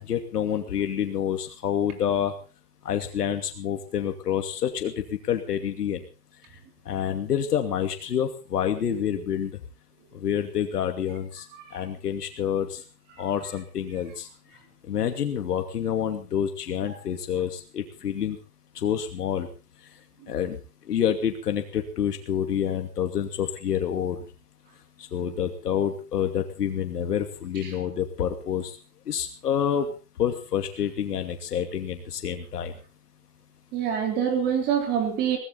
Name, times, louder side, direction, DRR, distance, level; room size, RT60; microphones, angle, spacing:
voice 1, 0.0-2.3 2.8-4.9 5.3-6.0 6.9-9.5 10.1-11.4 11.7-12.8 13.2-14.3 14.9-18.4 18.8-19.5 20.3-20.6 20.9-24.2 25.1-28.8 29.1-29.9 30.2-32.7, left 9 dB, 85° left, 6 dB, 2.7 m, -28 dB
voice 2, 33.7-35.4, right 8 dB, 20° right, 5 dB, 3.6 m, -25 dB
18.0 x 16.0 x 4.2 m, 0.35 s
hypercardioid pair, 165°, 46 cm